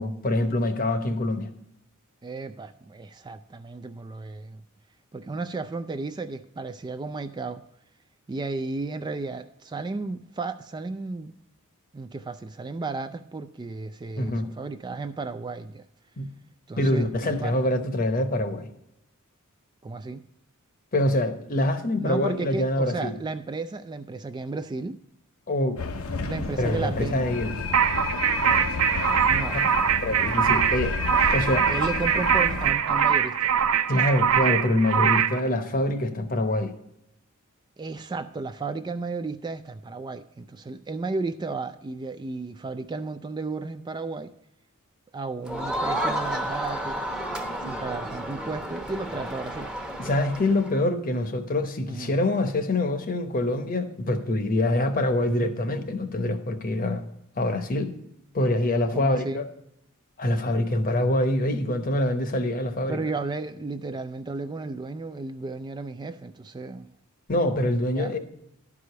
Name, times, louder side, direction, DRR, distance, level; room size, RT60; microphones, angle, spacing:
voice 1, 0.0-1.5 14.2-14.5 16.2-16.3 16.8-18.7 20.9-23.1 25.5-25.8 26.6-27.6 30.0-31.0 31.3-31.7 33.9-36.7 50.0-57.0 57.4-57.9 58.3-59.4 60.2-63.0 67.3-68.2, left 1 dB, 40° left, 8 dB, 0.9 m, -25 dB
voice 2, 2.2-4.6 5.1-7.6 8.3-11.3 11.9-15.9 16.7-17.6 19.8-20.2 22.0-25.0 26.3-27.3 29.3-29.6 31.7-33.5 37.8-44.3 45.1-47.0 47.6-49.7 51.9-52.1 58.9-59.4 62.9-66.9 67.9-68.1, right 3 dB, 20° right, 10 dB, 0.3 m, -33 dB
sound 1, 25.8-32.7, left 4 dB, 70° left, 0.8 m, -30 dB
sound 2, 27.7-35.4, right 8 dB, 75° right, 0.6 m, -23 dB
Crowd, 45.5-50.8, right 1 dB, 5° right, 0.8 m, -31 dB
11.5 x 4.9 x 6.7 m, 0.80 s
head